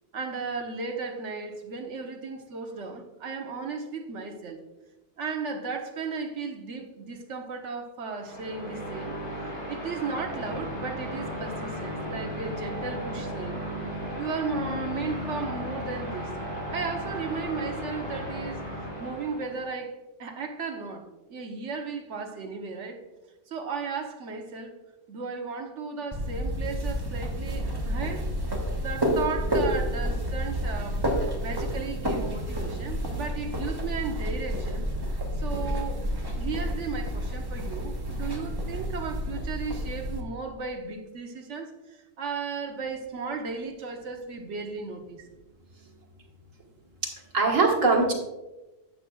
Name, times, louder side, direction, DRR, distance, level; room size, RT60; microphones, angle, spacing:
voice 1, 0.1-4.6 5.2-9.1 9.4-13.6 14.2-16.4 16.7-18.6 19.0-23.0 23.5-24.7 25.1-28.4 28.7-34.9 35.3-36.1 36.4-45.3, right 4 dB, 70° right, 4 dB, 1.3 m, -35 dB
sound 1, 8.1-19.6, right 1 dB, 80° left, 3.2 m, -36 dB
sound 2, 10.4-18.9, left 5 dB, 55° left, 0.7 m, -40 dB
sound 3, 26.1-40.2, equal, 20° right, 1.0 m, -30 dB
voice 2, 47.0-48.1, right 3 dB, 90° right, 1 dB, 1.8 m, -22 dB
11.5 x 8.2 x 2.3 m, 1.1 s
omnidirectional pair, 1.3 m